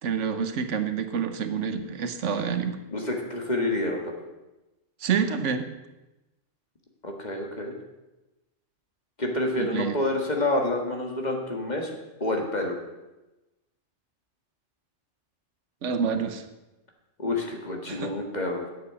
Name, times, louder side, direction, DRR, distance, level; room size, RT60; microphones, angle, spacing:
voice 1, 0.0-2.8 5.0-5.6 9.6-10.0 15.8-16.4 17.9-18.1, right 6 dB, 85° right, 8 dB, 1.3 m, -28 dB
voice 2, 2.9-4.1 7.0-7.7 9.2-11.9 12.2-12.7 17.2-18.7, left 2 dB, 35° left, 2 dB, 1.8 m, -28 dB
8.5 x 7.3 x 8.0 m, 1.0 s
omnidirectional pair, 1.2 m